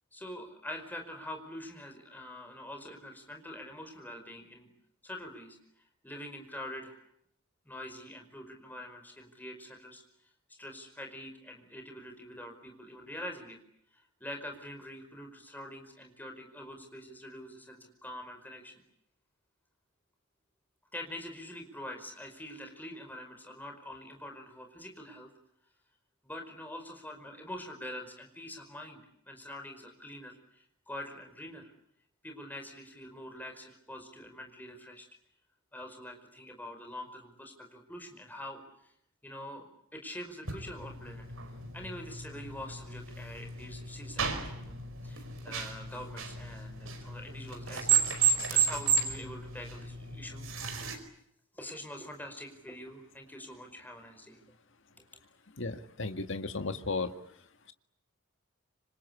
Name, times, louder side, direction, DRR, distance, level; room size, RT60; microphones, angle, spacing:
voice 1, 0.1-4.7 5.0-7.0 7.6-10.0 10.5-13.6 13.9-18.8 20.9-25.3 26.2-31.7 32.2-35.1 35.7-38.9 39.2-39.7 39.9-41.3 41.7-44.7 45.0-50.5 50.8-50.9 51.5-54.4 55.0-55.1, left 1 dB, 10° left, 4 dB, 5.0 m, -45 dB
sound 1, 40.4-51.0, right 6 dB, 70° right, 4.8 m, -33 dB
voice 2, 55.6-57.1, left 3 dB, 60° left, 7 dB, 1.9 m, -34 dB
27.0 x 25.5 x 8.5 m, 0.73 s
head